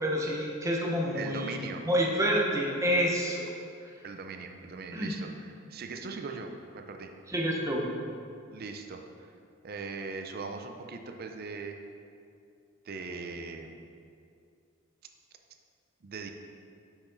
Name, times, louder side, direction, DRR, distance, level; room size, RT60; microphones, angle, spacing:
voice 1, 0.0-3.5 4.9-5.1 7.3-7.9, equal, 15° right, -2 dB, 0.8 m, -28 dB
voice 2, 1.1-1.8 4.0-7.1 8.5-9.3 9.6-11.8 12.8-13.8 16.0-16.3, right 4 dB, 45° right, 5 dB, 0.5 m, -40 dB
6.0 x 5.9 x 3.9 m, 2.4 s
head